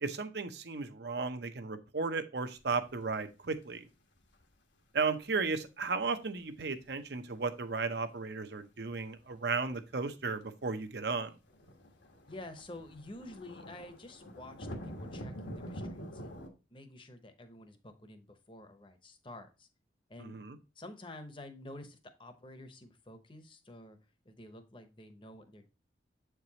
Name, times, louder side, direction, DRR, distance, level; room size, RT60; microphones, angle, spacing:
voice 1, 0.0-3.9 4.9-11.3 20.2-20.6, right 4 dB, 65° right, 9 dB, 0.7 m, -35 dB
sound 1, 2.6-3.2 3.5-3.8 4.2-4.4 6.0-6.1 6.4-6.8 8.8-8.9 9.2-9.3 9.6-9.7 9.9-10.0 11.5-16.5, equal, 80° left, 1.2 m, -45 dB
voice 2, 12.3-16.4 16.7-19.7 20.1-20.4 20.8-24.0 24.2-25.7, left 1 dB, 25° left, 8 dB, 0.7 m, -49 dB
7.6 x 4.7 x 2.8 m, 0.30 s
head